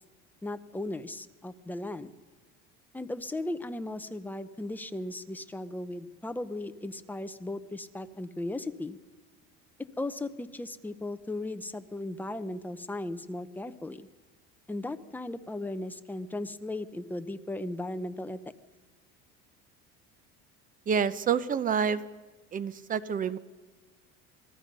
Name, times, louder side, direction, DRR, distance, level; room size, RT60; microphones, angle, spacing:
voice 1, 0.4-2.1 2.9-9.0 10.0-14.1 14.7-18.4, left 2 dB, 5° left, 10 dB, 0.7 m, -36 dB
voice 2, 20.9-22.0 22.5-23.4, right 7 dB, 25° right, 16 dB, 0.8 m, -28 dB
27.0 x 19.0 x 5.4 m, 1.3 s
cardioid pair, 140°, 30 cm